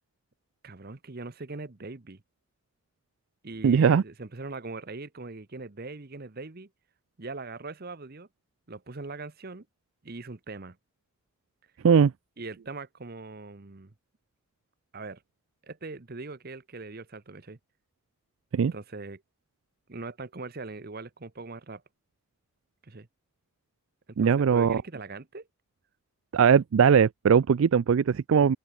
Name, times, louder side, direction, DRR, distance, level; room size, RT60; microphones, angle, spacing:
voice 1, 0.6-2.2 3.4-6.7 7.2-8.3 8.7-9.7 10.0-10.8 12.4-13.9 14.9-15.2 15.6-17.6 18.7-19.2 19.9-21.8 22.8-23.1 24.1-25.5 28.4-28.6, right 3 dB, 45° right, 0.9 m, -41 dB
voice 2, 3.6-4.0 11.8-12.1 18.5-18.7 24.2-24.8 26.3-28.6, right 7 dB, 60° right, 0.3 m, -20 dB
open air
head